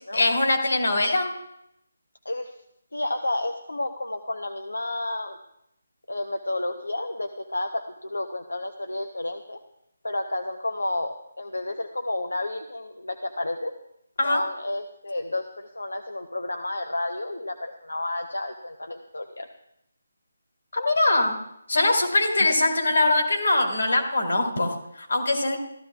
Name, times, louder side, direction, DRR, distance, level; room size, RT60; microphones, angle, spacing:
voice 1, 0.1-1.3 14.2-14.4 20.7-21.4 21.7-25.6, left 2 dB, 65° left, 3 dB, 2.3 m, -22 dB
voice 2, 2.2-2.5 2.9-5.4 6.1-9.6 10.0-13.7 14.2-19.5, left 2 dB, 85° left, 4 dB, 0.8 m, -31 dB
14.5 x 12.5 x 2.4 m, 0.77 s
figure-of-eight pair, 155°, 0 cm